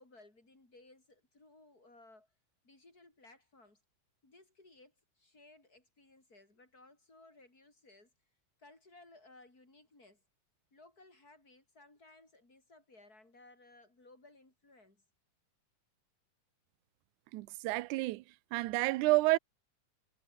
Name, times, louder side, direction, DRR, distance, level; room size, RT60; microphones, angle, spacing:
voice 1, 0.0-2.3 2.6-3.8 4.2-8.1 8.6-10.2 10.7-15.0, left 2 dB, 25° left, 7.8 m, -60 dB
voice 2, 17.3-18.2 18.5-19.4, right 20 dB, 80° right, 2.0 m, -29 dB
omnidirectional pair, 3.7 m